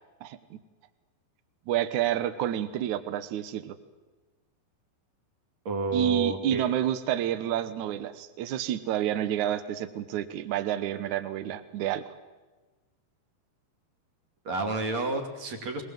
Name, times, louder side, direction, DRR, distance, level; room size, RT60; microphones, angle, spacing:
voice 1, 0.2-0.6 1.7-3.8 5.9-12.0, right 11 dB, 80° right, 12 dB, 1.7 m, -29 dB
voice 2, 5.6-6.7 14.4-15.8, right 3 dB, 45° right, 3 dB, 3.3 m, -30 dB
22.5 x 21.5 x 7.6 m, 1.2 s
omnidirectional pair, 5.1 m